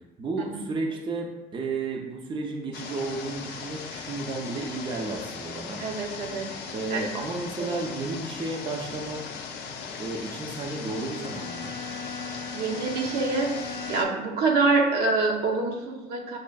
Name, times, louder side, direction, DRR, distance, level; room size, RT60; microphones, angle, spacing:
voice 1, 0.2-5.8 6.7-9.4 10.0-11.7, right 3 dB, 30° right, 1 dB, 0.4 m, -32 dB
sound 1, 2.7-14.0, left 5 dB, 85° left, 0.4 m, -38 dB
voice 2, 5.8-6.5 6.9-7.1 7.6-7.8 12.5-16.4, right 3 dB, 70° right, 0 dB, 0.6 m, -26 dB
Bowed string instrument, 10.3-14.3, left 4 dB, 20° left, 0.6 m, -39 dB
5.2 x 2.4 x 2.3 m, 1.1 s
cardioid pair, 110°, 17 cm